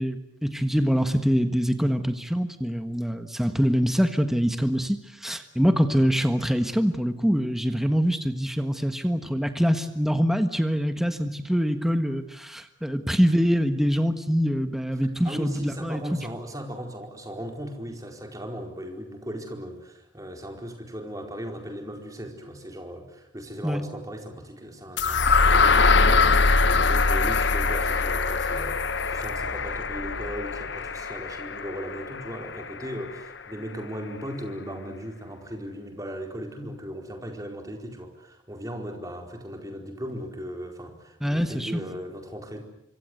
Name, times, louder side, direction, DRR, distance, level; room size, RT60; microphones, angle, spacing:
voice 1, 0.0-16.0 23.6-23.8 41.2-41.7, equal, ahead, 8 dB, 1.5 m, -24 dB
voice 2, 15.2-42.6, equal, 20° right, 4 dB, 4.6 m, -37 dB
sound 1, 25.0-32.9, left 4 dB, 65° left, 1.3 m, -23 dB
26.0 x 25.0 x 8.0 m, 0.83 s
head